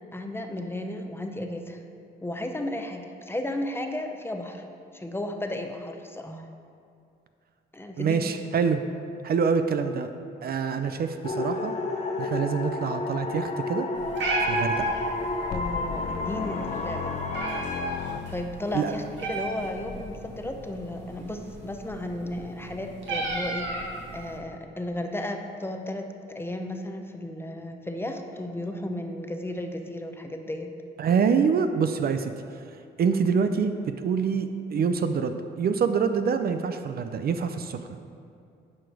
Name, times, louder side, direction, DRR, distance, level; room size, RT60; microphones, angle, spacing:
voice 1, 0.1-1.8 2.2-4.7 4.9-6.5 7.7-8.2 14.8-14.9 15.5-17.1 17.5-17.6 18.1-23.7 24.1-30.7, left 1 dB, 10° left, 4 dB, 0.7 m, -34 dB
voice 2, 8.0-8.8 9.2-10.1 10.4-11.7 12.2-13.9 14.4-14.9 18.7-19.0 31.0-32.3 33.0-38.0, right 6 dB, 50° right, 8 dB, 0.5 m, -26 dB
sound 1, 11.2-17.6, left 3 dB, 35° left, 1.0 m, -31 dB
Meow, 13.9-24.4, right 2 dB, 70° right, 1.7 m, -34 dB
sound 2, 15.5-18.8, left 8 dB, 50° left, 0.4 m, -36 dB
10.0 x 4.9 x 4.8 m, 2.5 s
cardioid pair, 90°, 20 cm